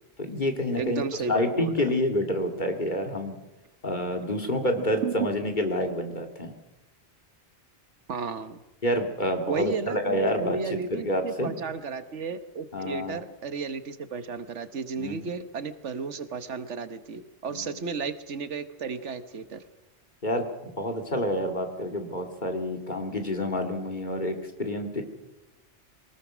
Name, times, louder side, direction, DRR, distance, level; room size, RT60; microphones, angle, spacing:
voice 1, 0.2-1.0 1.3-3.3 3.8-6.5 8.8-10.6 10.9-11.5 12.7-13.2 15.0-15.3 17.5-17.7 20.2-25.0, left 1 dB, 40° left, 4 dB, 2.5 m, -28 dB
voice 2, 0.8-1.9 4.8-5.3 8.1-8.6 9.5-19.6, right 5 dB, 80° right, 11 dB, 1.5 m, -33 dB
23.0 x 19.0 x 6.2 m, 1.0 s
omnidirectional pair, 1.2 m